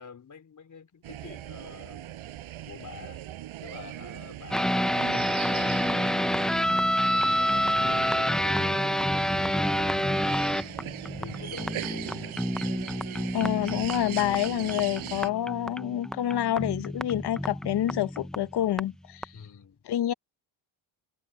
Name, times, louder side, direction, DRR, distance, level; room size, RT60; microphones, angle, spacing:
voice 1, 0.0-2.1 2.6-3.2 3.6-6.6 7.1-8.8 11.1-12.4 19.3-19.8, left 6 dB, 40° left, 4.4 m, -47 dB
sound 1, 1.0-15.3, right 12 dB, 80° right, 6.4 m, -40 dB
sound 2, 4.5-18.8 19.2-19.3, equal, ahead, 0.4 m, -28 dB
voice 2, 13.3-19.3 19.9-20.1, left 12 dB, 55° left, 0.9 m, -28 dB
cardioid pair, 120°, 48 cm